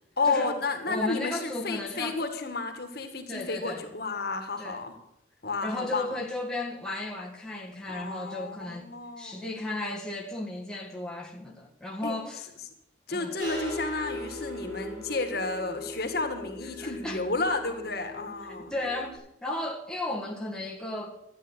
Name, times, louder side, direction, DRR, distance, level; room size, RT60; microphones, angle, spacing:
voice 1, 0.2-4.9 5.4-6.1 7.9-9.5 12.0-12.2 13.1-18.7, left 3 dB, 50° left, 1.8 m, -31 dB
voice 2, 0.9-2.2 3.3-3.8 4.6-4.8 5.6-8.9 9.2-12.4 13.1-13.3 16.8-17.2 18.7-21.2, left 2 dB, 5° left, 1.6 m, -34 dB
sound 1, 13.4-19.2, left 1 dB, 45° right, 6.0 m, -39 dB
13.0 x 9.6 x 8.1 m
head